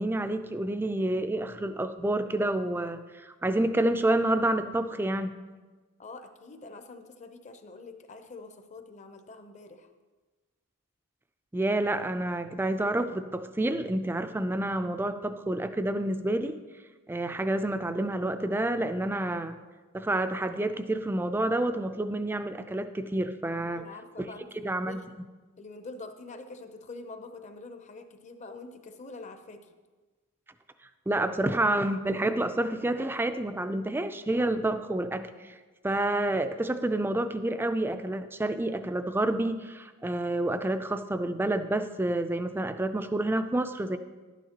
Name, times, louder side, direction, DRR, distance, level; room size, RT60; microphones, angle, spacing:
voice 1, 0.0-5.3 11.5-16.6 17.1-19.6 19.9-23.8 24.6-25.0 31.1-35.5 35.8-44.0, right 1 dB, 10° right, 9 dB, 0.3 m, -29 dB
voice 2, 6.0-9.9 23.5-25.1 25.6-29.7, left 3 dB, 35° left, 8 dB, 0.6 m, -45 dB
11.5 x 9.2 x 2.9 m, 1.3 s
head